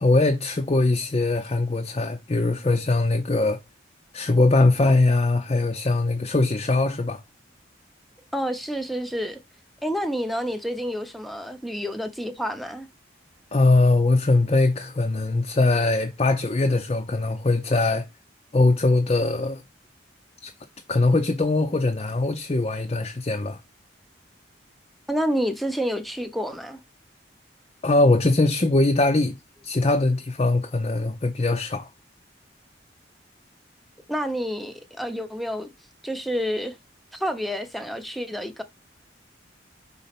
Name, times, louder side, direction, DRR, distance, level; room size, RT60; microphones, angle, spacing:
voice 1, 0.0-3.6 4.1-7.2 13.5-18.0 18.5-19.6 20.4-20.5 20.9-23.6 27.8-29.4 29.6-31.9, left 2 dB, 30° left, 0.6 m, -21 dB
voice 2, 8.3-9.4 9.8-12.9 25.1-26.8 34.1-35.7 36.0-36.8 37.1-38.6, equal, ahead, 0.7 m, -29 dB
5.4 x 4.0 x 5.9 m
head